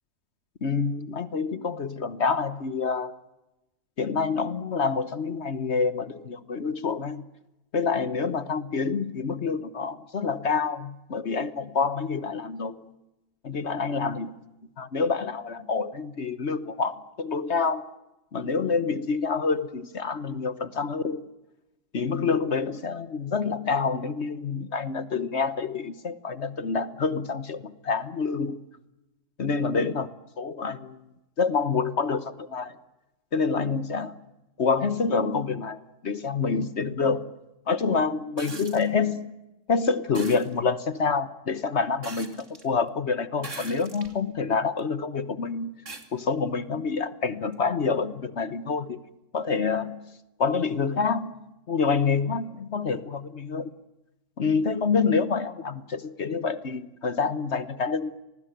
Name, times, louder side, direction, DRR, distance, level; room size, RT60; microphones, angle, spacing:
voice 1, 0.6-3.1 4.0-7.2 7.7-12.9 13.4-14.4 14.8-17.9 18.3-21.3 21.9-28.6 29.4-30.1 30.4-31.1 31.4-32.7 33.3-34.2 34.6-37.3 37.7-39.3 39.7-45.8 46.1-49.0 49.3-50.0 50.4-51.4 51.7-53.7 54.4-58.1, left 5 dB, 45° left, 14 dB, 1.3 m, -27 dB
sound 1, 38.4-38.9 40.1-40.5 42.0-42.6 43.4-44.1 44.8-44.9 45.9-46.1 47.5-47.6, right 3 dB, 50° right, 3.0 m, -40 dB
26.5 x 19.5 x 9.2 m, 0.98 s
omnidirectional pair, 1.7 m